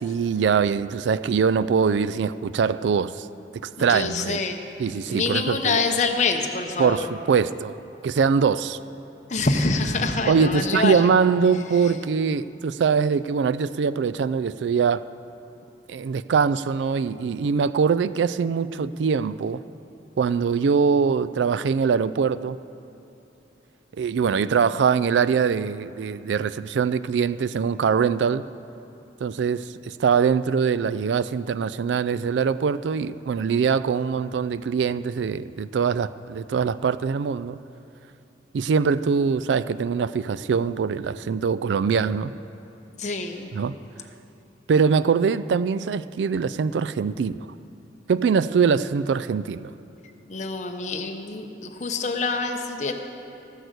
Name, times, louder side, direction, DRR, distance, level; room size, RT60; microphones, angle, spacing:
voice 1, 0.0-3.3 3.6-4.4 4.8-5.8 6.8-7.7 8.0-8.8 10.3-15.1 15.9-19.6 20.2-22.6 24.0-28.4 29.2-37.6 38.5-42.3 43.5-43.7 44.7-47.4 48.1-49.7, right 6 dB, 85° right, 16 dB, 0.3 m, -23 dB
voice 2, 3.8-4.6 5.1-7.1 9.3-11.1 11.8-11.9 43.0-43.5 50.3-52.9, left 3 dB, 40° left, 4 dB, 0.9 m, -26 dB
16.0 x 6.5 x 8.0 m, 2.9 s
head